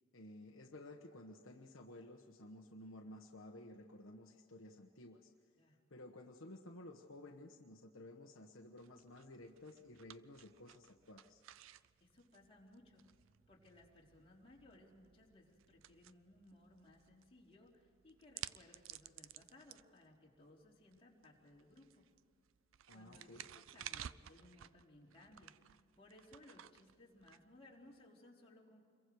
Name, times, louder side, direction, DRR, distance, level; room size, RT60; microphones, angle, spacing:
voice 1, 0.1-5.3 5.9-11.4 22.9-23.4, left 1 dB, 65° left, 2 dB, 1.3 m, -54 dB
sound 1, 8.8-28.0, right 11 dB, 65° right, 0.5 m, -56 dB
voice 2, 12.0-13.0 13.5-22.1 22.9-28.9, left 1 dB, 25° left, -3 dB, 3.9 m, -63 dB
27.5 x 22.5 x 4.8 m, 2.2 s
head